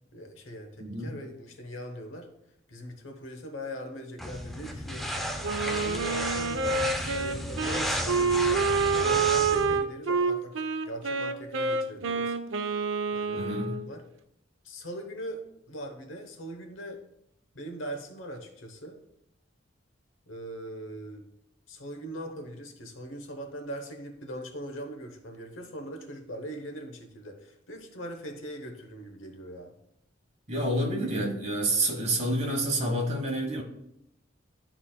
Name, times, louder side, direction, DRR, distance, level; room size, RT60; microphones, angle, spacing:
voice 1, 0.1-2.3 2.7-12.3 13.1-14.1 14.6-17.0 17.5-19.0 20.3-21.3 21.7-29.7, equal, 90° left, 5 dB, 1.0 m, -41 dB
voice 2, 0.8-1.1 13.3-13.8 30.5-33.6, right 1 dB, 35° right, 1 dB, 1.2 m, -28 dB
sound 1, 4.2-9.8, equal, ahead, 0.5 m, -33 dB
Wind instrument woodwind instrument, 5.4-13.9, right 4 dB, 80° right, 0.5 m, -28 dB
11.5 x 4.0 x 2.2 m, 0.81 s
head